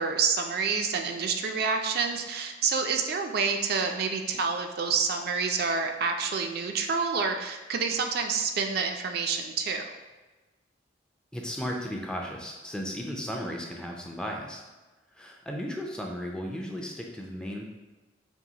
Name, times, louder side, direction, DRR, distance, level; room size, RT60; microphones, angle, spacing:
voice 1, 0.0-9.8, right 5 dB, 55° right, 5 dB, 0.4 m, -28 dB
voice 2, 11.3-14.6 15.1-17.7, equal, 5° left, 0 dB, 0.4 m, -35 dB
5.2 x 2.7 x 2.8 m, 1.2 s
head